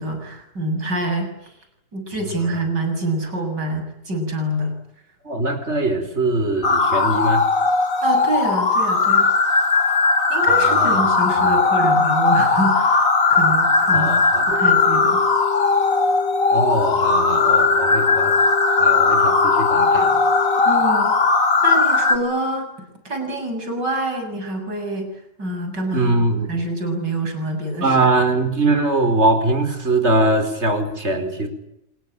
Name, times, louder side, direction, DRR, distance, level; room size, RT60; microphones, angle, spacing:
voice 1, 0.0-1.3 1.9-4.7 8.0-9.3 10.3-15.2 20.7-21.1 21.6-22.7 23.0-25.1 25.4-28.0, right 1 dB, 80° right, 5 dB, 7.8 m, -26 dB
voice 2, 5.3-7.4 10.5-11.0 11.4-11.6 13.9-14.6 16.5-18.4 18.8-20.2 25.9-26.5 27.8-31.5, right 2 dB, 40° right, 8 dB, 5.2 m, -21 dB
sound 1, 6.6-22.2, left 4 dB, 50° left, 2.9 m, -18 dB
sound 2, 14.5-20.6, left 6 dB, 85° left, 2.4 m, -28 dB
27.5 x 22.5 x 9.0 m, 0.79 s
omnidirectional pair, 1.8 m